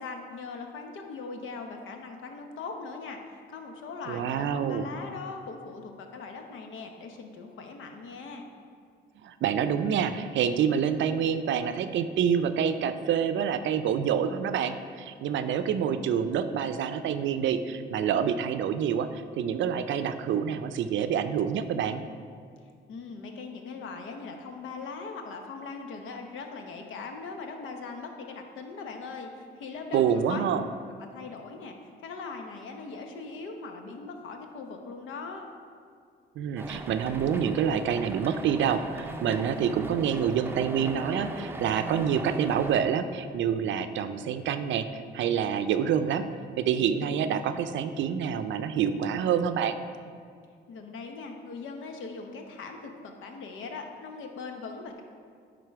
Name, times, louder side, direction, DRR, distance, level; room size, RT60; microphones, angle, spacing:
voice 1, 0.0-3.2 3.5-8.4 22.9-30.5 31.1-31.8 32.0-35.5 50.7-55.0, left 4 dB, 80° left, 4 dB, 1.0 m, -40 dB
voice 2, 4.1-4.9 9.2-22.0 29.9-30.6 36.4-44.9 45.1-46.2 46.6-49.8, right 8 dB, 70° right, 10 dB, 0.5 m, -27 dB
sound 1, 36.6-42.8, right 2 dB, 10° right, 0.6 m, -39 dB
10.5 x 3.9 x 4.6 m, 2.2 s
cardioid pair, 90°, 20 cm